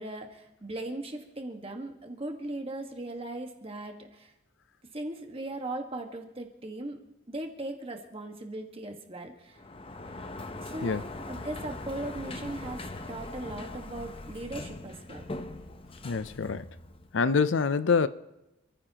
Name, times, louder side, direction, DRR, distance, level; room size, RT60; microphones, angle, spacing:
voice 1, 0.0-4.3 4.9-7.0 7.3-9.6 10.6-15.2 16.0-16.1, right 1 dB, 30° right, 1.5 m, -38 dB
Sliding door, 9.5-17.3, left 2 dB, 30° left, 0.8 m, -41 dB
voice 2, 16.0-16.7 17.1-18.1, left 5 dB, 65° left, 0.5 m, -25 dB
27.5 x 14.5 x 2.9 m
head